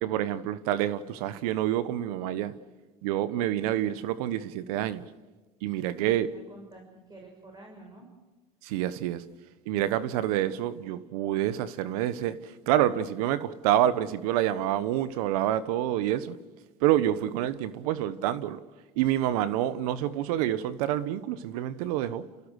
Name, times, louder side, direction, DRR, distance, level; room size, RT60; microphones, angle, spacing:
voice 1, 0.0-2.5 3.0-5.0 5.6-6.3 8.6-9.2 9.7-16.3 16.8-18.6 19.0-22.2, right 12 dB, 80° right, 1.2 m, -27 dB
voice 2, 5.9-8.1, right 2 dB, 20° right, 6.0 m, -48 dB
30.0 x 16.5 x 6.5 m
supercardioid pair, 90°, 19 cm